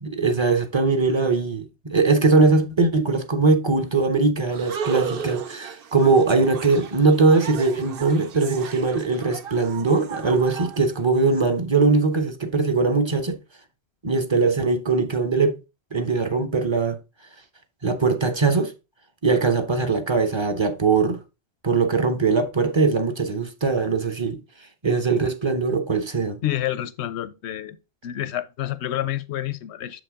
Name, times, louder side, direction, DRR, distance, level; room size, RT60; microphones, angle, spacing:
voice 1, 0.0-13.4 14.0-15.6 15.9-17.0 17.8-18.7 19.2-21.2 21.6-24.4 24.8-26.4, right 4 dB, 30° right, 0.7 m, -21 dB
sound 1, 4.5-11.4, right 7 dB, 60° right, 0.8 m, -35 dB
voice 2, 26.4-27.8 28.0-30.0, left 12 dB, 80° left, 0.9 m, -28 dB
7.0 x 5.1 x 3.5 m
omnidirectional pair, 1.1 m